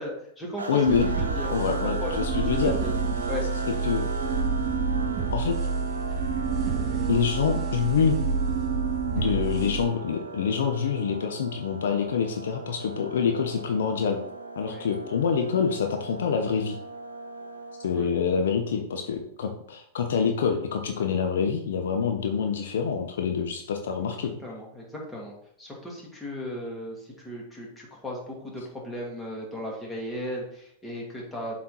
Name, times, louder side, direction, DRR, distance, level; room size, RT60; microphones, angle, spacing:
voice 1, 0.0-0.8 1.1-2.9 3.3-3.5 14.6-14.9 17.9-18.1 24.0-24.1 24.4-31.6, left 1 dB, 10° left, -3 dB, 2.7 m, -36 dB
sound 1, 0.6-18.4, right 4 dB, 85° right, 0.9 m, -38 dB
voice 2, 0.7-1.1 1.5-2.7 3.8-4.0 5.3-5.5 7.1-8.3 9.2-14.2 14.6-16.8 17.8-24.3, left 6 dB, 70° left, 5 dB, 0.8 m, -26 dB
sound 2, 0.9-9.9, right 4 dB, 35° right, 2.5 m, -28 dB
7.4 x 4.3 x 4.3 m, 0.69 s
hypercardioid pair, 100°, 0 cm